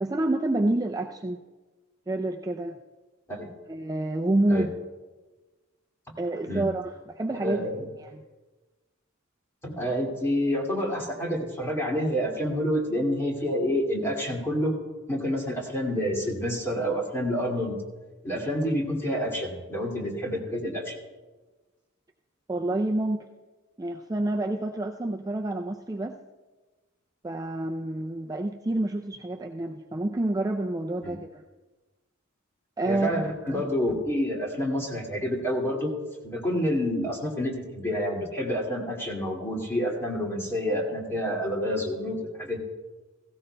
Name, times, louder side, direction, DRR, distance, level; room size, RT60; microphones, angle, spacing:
voice 1, 0.0-1.4 2.1-2.8 3.7-4.7 6.2-7.7 8.0-8.2 22.5-23.3 23.8-26.2 27.2-31.4 32.8-33.6, right 2 dB, 15° right, 2 dB, 0.4 m, -28 dB
voice 2, 7.4-7.9 9.6-14.7 15.1-17.8 18.2-21.0 31.0-31.2 32.9-35.9 36.2-42.6, equal, 10° left, -2 dB, 2.2 m, -28 dB
17.0 x 16.0 x 2.2 m, 1.3 s
head